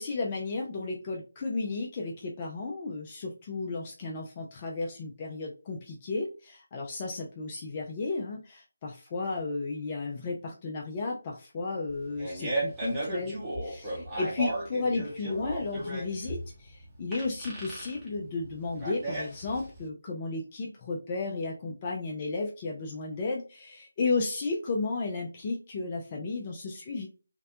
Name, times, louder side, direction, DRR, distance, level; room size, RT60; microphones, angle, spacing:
voice 1, 0.0-27.1, left 3 dB, 25° left, -1 dB, 0.3 m, -33 dB
Fart, 11.9-19.8, right 2 dB, 10° right, 0.8 m, -35 dB
2.6 x 2.1 x 2.4 m, 0.34 s
figure-of-eight pair, 160°, 0 cm